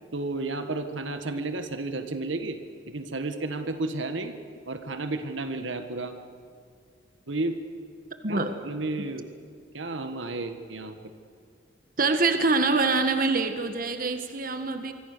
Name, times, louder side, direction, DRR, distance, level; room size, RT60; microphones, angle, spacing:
voice 1, 0.1-2.6 2.9-4.4 4.7-6.1 7.3-7.6 8.3-9.3 9.7-11.0, right 2 dB, 85° right, 8 dB, 1.6 m, -32 dB
voice 2, 8.2-8.6 12.0-14.9, right 3 dB, 50° right, 8 dB, 1.5 m, -25 dB
25.5 x 24.5 x 6.8 m, 2.2 s
head